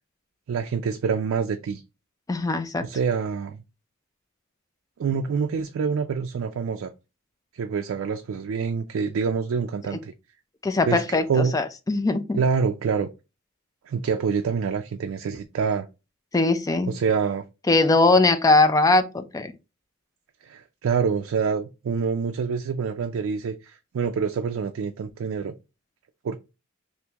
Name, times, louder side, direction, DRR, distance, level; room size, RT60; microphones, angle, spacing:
voice 1, 0.5-1.8 2.8-3.6 5.0-6.9 7.5-10.1 10.9-11.5 12.3-13.1 13.9-15.9 16.9-17.4 20.4-25.5 26.2-26.4, right 6 dB, 70° right, 0.3 m, -26 dB
voice 2, 2.3-2.8 10.6-12.4 16.3-16.9 17.7-19.5, left 2 dB, 15° left, 0.3 m, -21 dB
3.4 x 2.6 x 2.8 m
head